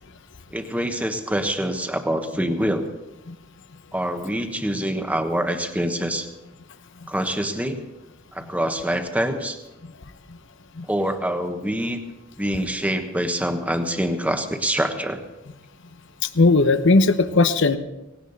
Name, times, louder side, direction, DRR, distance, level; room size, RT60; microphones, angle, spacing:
voice 1, 0.5-2.9 3.9-6.3 7.1-7.8 8.3-9.6 10.9-12.0 12.4-15.2, equal, 5° right, 6 dB, 1.3 m, -25 dB
voice 2, 16.2-17.8, left 3 dB, 65° left, 11 dB, 1.0 m, -17 dB
18.0 x 17.5 x 4.1 m, 0.98 s
head